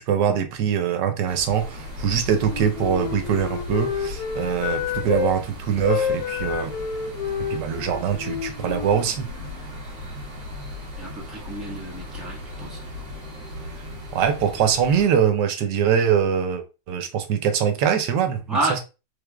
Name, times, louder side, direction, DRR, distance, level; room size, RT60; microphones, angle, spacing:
voice 1, 0.0-6.7 7.5-9.3 14.1-18.8, right 8 dB, 80° right, 1.3 m, -23 dB
sound 1, 1.3-15.1, left 1 dB, 55° right, 1.9 m, -37 dB
Wind instrument woodwind instrument, 2.4-5.3 5.8-9.7, left 7 dB, 80° left, 1.5 m, -29 dB
voice 2, 11.0-12.8 18.5-18.8, right 2 dB, ahead, 1.1 m, -29 dB
3.6 x 3.3 x 2.3 m
omnidirectional pair, 1.8 m